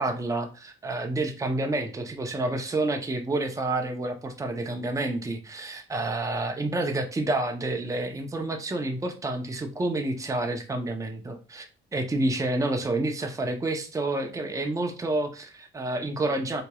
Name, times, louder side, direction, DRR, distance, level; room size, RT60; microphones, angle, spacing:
voice 1, 0.0-16.6, right 2 dB, 15° right, 4 dB, 0.7 m, -29 dB
4.4 x 2.9 x 2.3 m, 0.34 s
cardioid pair, 90°, 20 cm